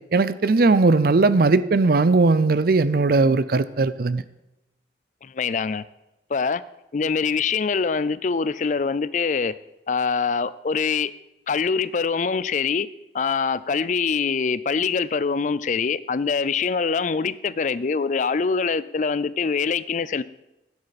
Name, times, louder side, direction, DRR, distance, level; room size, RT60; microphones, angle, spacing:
voice 1, 0.1-4.2, right 3 dB, 55° right, 15 dB, 0.5 m, -18 dB
voice 2, 5.2-5.8 6.3-6.6 6.9-9.5 9.9-11.1 11.5-12.9 13.1-20.2, left 5 dB, 45° left, 17 dB, 0.4 m, -24 dB
12.0 x 9.8 x 4.2 m, 0.92 s
head